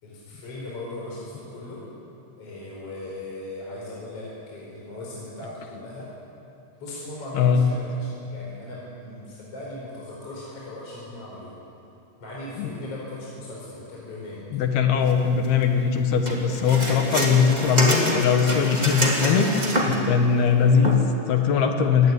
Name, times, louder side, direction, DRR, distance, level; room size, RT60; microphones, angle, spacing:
voice 1, 0.0-1.9 2.4-6.1 6.8-11.5 12.2-14.5, left 2 dB, 30° left, -5 dB, 5.2 m, -38 dB
voice 2, 7.3-7.7 12.6-12.7 14.5-19.5 19.8-22.1, left 6 dB, 65° left, 5 dB, 3.1 m, -20 dB
sound 1, 16.3-20.1 20.8-20.9, right 1 dB, 15° right, 1.8 m, -25 dB
23.5 x 17.5 x 9.6 m, 2.7 s
omnidirectional pair, 5.3 m